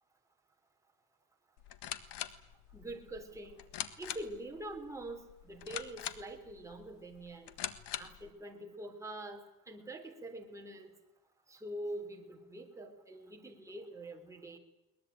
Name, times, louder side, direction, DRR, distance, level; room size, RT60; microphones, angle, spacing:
sound 1, 1.6-8.3, left 12 dB, 75° left, 1.7 m, -44 dB
voice 1, 2.7-3.6 4.0-7.5 8.0-10.9 11.5-14.6, right 1 dB, 5° right, 1 dB, 3.7 m, -45 dB
22.0 x 20.5 x 8.9 m, 0.93 s
cardioid pair, 125°, 41 cm